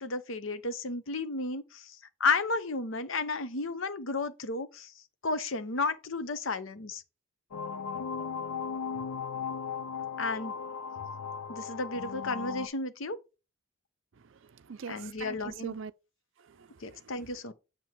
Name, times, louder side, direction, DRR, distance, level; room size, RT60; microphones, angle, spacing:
voice 1, 0.0-4.9 5.2-7.0 10.2-10.5 11.5-13.2 14.9-15.7 16.8-17.5, left 3 dB, 60° left, 0.8 m, -33 dB
sound 1, 7.5-12.7, left 6 dB, 85° left, 0.5 m, -36 dB
voice 2, 14.2-15.9 16.4-17.1, right 5 dB, 55° right, 0.4 m, -43 dB
7.6 x 3.0 x 6.0 m
head